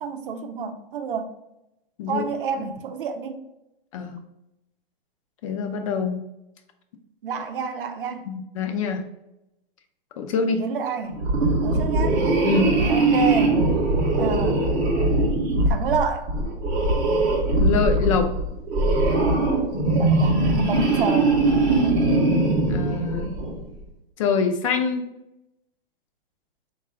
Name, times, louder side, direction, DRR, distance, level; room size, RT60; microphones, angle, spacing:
voice 1, 0.0-1.3 2.1-3.4 7.2-8.3 10.6-11.2 11.6-12.2 12.9-13.6 14.2-14.6 15.7-16.3 19.9-21.5, right 6 dB, 60° right, 7 dB, 0.6 m, -29 dB
voice 2, 5.4-6.2 8.3-9.0 10.2-10.6 12.4-12.7 17.6-18.3 22.7-23.3 24.2-25.0, left 5 dB, 35° left, 6 dB, 0.4 m, -24 dB
sound 1, 11.2-23.7, right 2 dB, 25° right, 0.7 m, -21 dB
3.8 x 2.3 x 4.5 m, 0.91 s
hypercardioid pair, 155°, 29 cm